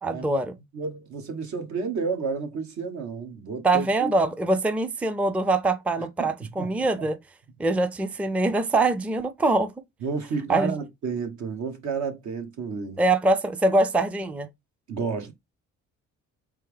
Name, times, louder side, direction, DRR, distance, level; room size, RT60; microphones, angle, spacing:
voice 1, 0.0-0.5 3.6-7.2 7.6-9.7 10.5-10.7 13.0-14.5, right 2 dB, 5° right, 0.4 m, -23 dB
voice 2, 0.7-4.1 6.0-6.3 6.6-6.7 7.0-7.1 10.0-13.0 14.9-15.3, right 5 dB, 70° right, 1.1 m, -31 dB
3.6 x 3.4 x 3.3 m
cardioid pair, 90°, 30 cm